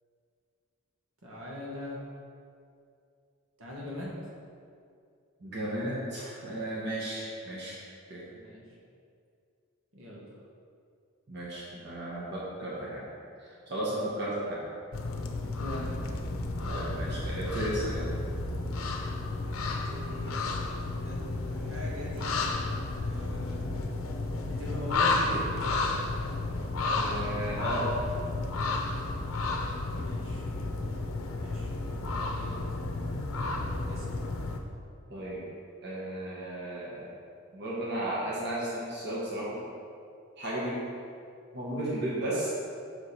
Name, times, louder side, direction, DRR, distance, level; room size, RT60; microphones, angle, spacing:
voice 1, 1.2-2.0 3.6-4.2 8.3-8.6 9.9-10.2 15.6-15.9 19.6-20.8 21.0-22.3 23.0-23.7 24.5-25.4 30.0-30.4 31.3-32.5 33.9-34.1 40.6-40.8, left 1 dB, 75° right, -5 dB, 1.4 m, -42 dB
voice 2, 5.4-7.8 8.1-8.2 11.3-13.1 13.4-14.6 16.7-18.1 26.9-27.9 35.1-35.5 35.8-37.1 37.5-39.6 40.4-40.8 41.5-42.5, right 1 dB, 55° right, -7 dB, 1.2 m, -34 dB
sound 1, 14.9-34.6, left 2 dB, 80° left, 0.6 m, -32 dB
6.5 x 4.8 x 4.2 m, 2.4 s
head